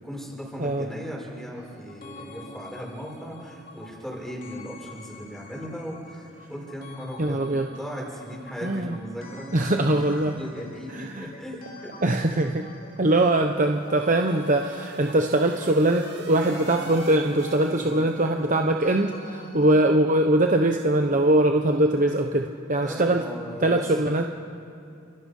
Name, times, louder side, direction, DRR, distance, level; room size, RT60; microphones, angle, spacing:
voice 1, 0.0-11.9 17.7-18.1 21.5-21.8 22.8-23.9, equal, ahead, -3 dB, 6.2 m, -38 dB
sound 1, 1.5-19.8, left 2 dB, 45° left, 2.8 m, -46 dB
voice 2, 7.2-7.7 8.6-9.0 9.5-10.4 10.9-11.3 12.0-12.7 13.0-23.2 23.6-24.2, right 1 dB, 40° right, 4 dB, 1.0 m, -22 dB
sound 2, 13.4-18.4, right 3 dB, 55° right, 2.2 m, -45 dB
30.0 x 28.0 x 5.5 m, 2.6 s
head